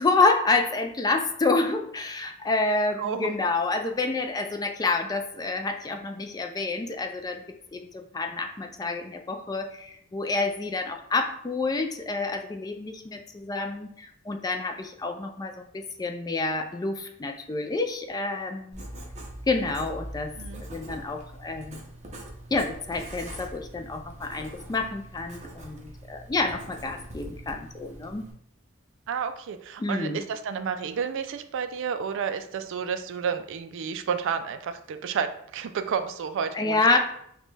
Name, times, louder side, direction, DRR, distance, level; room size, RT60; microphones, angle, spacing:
voice 1, 0.0-7.4 7.7-18.9 19.5-20.3 20.7-21.9 22.5-28.2 29.8-30.2 36.5-37.0, left 3 dB, 20° left, 5 dB, 0.3 m, -28 dB
voice 2, 3.0-3.3 20.4-20.6 29.1-37.0, right 6 dB, 60° right, 9 dB, 0.3 m, -31 dB
Writing, 18.7-28.3, right 1 dB, 35° right, 0.7 m, -42 dB
5.1 x 2.2 x 3.2 m, 0.71 s
head